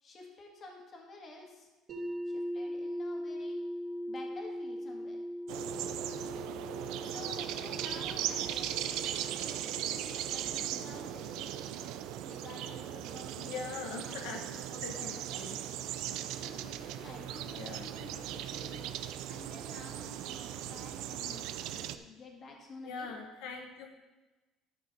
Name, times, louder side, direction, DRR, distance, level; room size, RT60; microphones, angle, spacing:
voice 1, 0.0-1.7 2.2-3.6 4.1-5.2 7.0-11.5 12.3-15.4 16.3-19.0 19.3-23.1, left 3 dB, 35° left, 0 dB, 1.9 m, -51 dB
sound 1, 1.9-13.8, equal, 35° right, 2.6 m, -42 dB
sound 2, 5.5-22.0, right 11 dB, 75° right, 0.4 m, -38 dB
voice 2, 13.4-14.4 14.8-15.6 17.6-17.9 22.8-23.9, left 5 dB, 90° left, 3 dB, 1.0 m, -42 dB
12.0 x 5.9 x 4.1 m, 1.1 s
cardioid pair, 135°, 0 cm